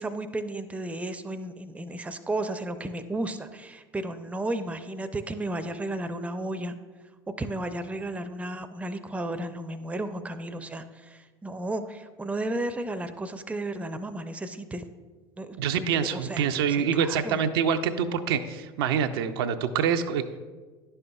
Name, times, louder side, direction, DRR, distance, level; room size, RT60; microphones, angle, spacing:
voice 1, 0.0-6.8 7.4-14.8 15.4-15.6 16.1-16.5 16.9-17.4, right 1 dB, 10° right, 10 dB, 0.5 m, -33 dB
voice 2, 15.6-20.4, right 7 dB, 70° right, 7 dB, 0.4 m, -26 dB
10.5 x 5.5 x 2.3 m, 1.4 s
hypercardioid pair, 70°, 13 cm